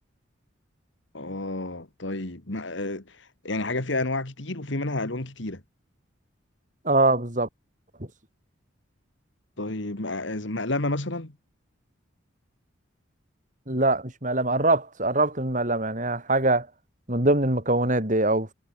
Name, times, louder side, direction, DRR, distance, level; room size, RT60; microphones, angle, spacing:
voice 1, 1.1-5.6 9.6-11.4, left 2 dB, 65° left, 2.2 m, -30 dB
voice 2, 6.8-7.5 13.7-16.7 17.1-18.5, right 2 dB, 40° right, 4.1 m, -23 dB
head